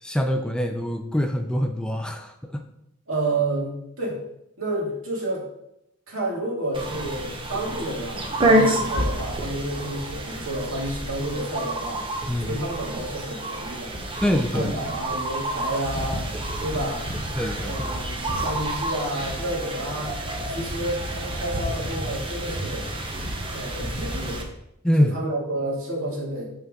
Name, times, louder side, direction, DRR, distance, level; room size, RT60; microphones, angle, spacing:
voice 1, 0.0-2.6 12.3-12.6 14.2-14.7 17.4-17.8 24.8-25.1, equal, 5° left, 5 dB, 0.4 m, -24 dB
voice 2, 3.1-4.2 4.6-5.5 6.1-12.0 12.4-14.0 14.5-16.3 16.6-17.1 17.6-20.2 20.5-22.9 23.5-24.4 25.0-26.4, right 1 dB, 75° right, -3 dB, 2.3 m, -30 dB
sound 1, 6.7-24.4, right 1 dB, 25° right, 0.9 m, -28 dB
6.6 x 5.7 x 3.7 m, 0.81 s
head